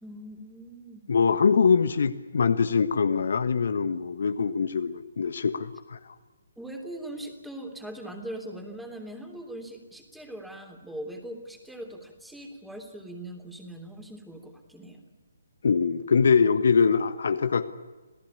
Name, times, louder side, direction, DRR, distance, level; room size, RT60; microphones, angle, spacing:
voice 1, 0.0-1.0 6.6-15.0, right 1 dB, ahead, 4 dB, 3.2 m, -41 dB
voice 2, 1.1-6.1 15.6-17.7, left 5 dB, 55° left, 11 dB, 1.3 m, -23 dB
27.5 x 18.0 x 8.7 m, 1.3 s
figure-of-eight pair, 135°, 0 cm